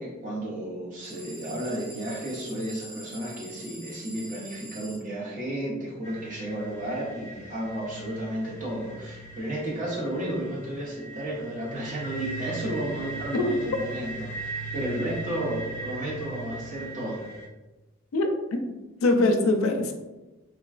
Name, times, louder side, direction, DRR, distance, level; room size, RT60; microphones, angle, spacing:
voice 1, 0.0-17.3, right 1 dB, 40° right, -4 dB, 0.9 m, -33 dB
sound 1, 1.0-5.0, right 1 dB, 70° right, 1.1 m, -44 dB
sound 2, 6.0-17.5, right 3 dB, 15° left, 1.1 m, -39 dB
voice 2, 18.1-18.7 19.0-19.9, left 2 dB, 70° left, 5 dB, 0.4 m, -23 dB
3.5 x 2.2 x 2.4 m, 1.1 s
head